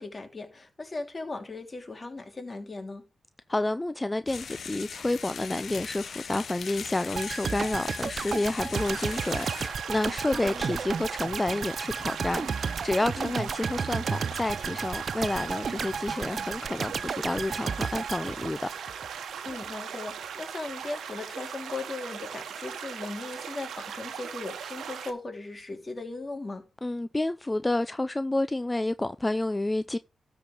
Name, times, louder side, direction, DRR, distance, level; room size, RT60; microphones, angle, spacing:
voice 1, 0.0-3.0 10.3-10.7 13.2-13.5 19.4-26.7, left 3 dB, 40° left, 2.9 m, -38 dB
voice 2, 3.5-18.7 26.8-30.0, left 2 dB, 25° left, 0.5 m, -30 dB
sound 1, 4.3-9.7, left 6 dB, 70° left, 0.8 m, -40 dB
sound 2, 7.1-19.2 19.5-19.6, right 5 dB, 60° right, 0.5 m, -33 dB
sound 3, 8.7-25.1, right 7 dB, 85° right, 1.0 m, -39 dB
13.0 x 4.8 x 4.9 m
supercardioid pair, 45°, 0 cm